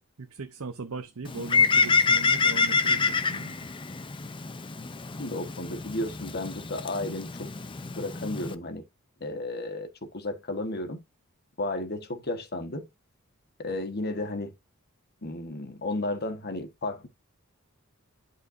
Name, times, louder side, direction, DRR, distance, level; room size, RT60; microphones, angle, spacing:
voice 1, 0.2-3.6, right 4 dB, 75° right, 0.7 m, -39 dB
Bird, 1.2-8.5, left 4 dB, 25° left, 0.5 m, -27 dB
voice 2, 5.2-7.5 8.0-8.8 9.2-11.0 11.6-12.9 13.6-14.5 15.2-17.1, left 2 dB, 45° left, 1.4 m, -33 dB
11.0 x 4.5 x 2.6 m
head